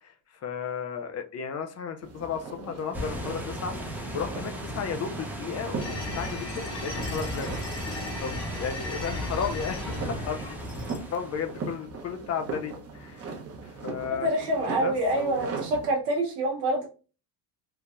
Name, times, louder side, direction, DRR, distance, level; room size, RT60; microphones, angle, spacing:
voice 1, 0.0-3.8 4.1-7.6 7.8-10.4 11.1-13.3 13.6-14.3 14.8-15.5, left 6 dB, 35° left, 0.4 m, -34 dB
sound 1, 2.0-15.9, right 4 dB, 30° right, 0.9 m, -40 dB
sound 2, 2.9-11.6, equal, 5° right, 0.6 m, -36 dB
sound 3, 5.8-11.0, left 2 dB, 55° left, 1.2 m, -37 dB
voice 2, 14.2-16.9, right 1 dB, 80° right, 1.0 m, -26 dB
3.7 x 2.7 x 2.4 m
supercardioid pair, 105°, 48 cm